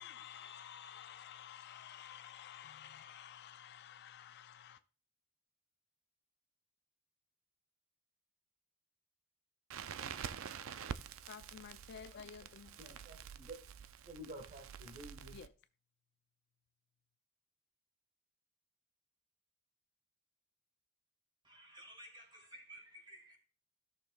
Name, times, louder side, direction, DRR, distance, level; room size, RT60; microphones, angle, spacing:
voice 1, 0.0-4.8 11.3-12.8 15.3-15.5, left 8 dB, 50° left, 0.4 m, -52 dB
Crackle, 9.7-15.5, right 7 dB, 60° right, 0.4 m, -47 dB
voice 2, 12.8-13.6 14.1-15.4, right 1 dB, 35° right, 1.3 m, -50 dB
voice 3, 21.4-23.4, right 1 dB, 20° right, 3.2 m, -55 dB
16.0 x 6.5 x 2.3 m
head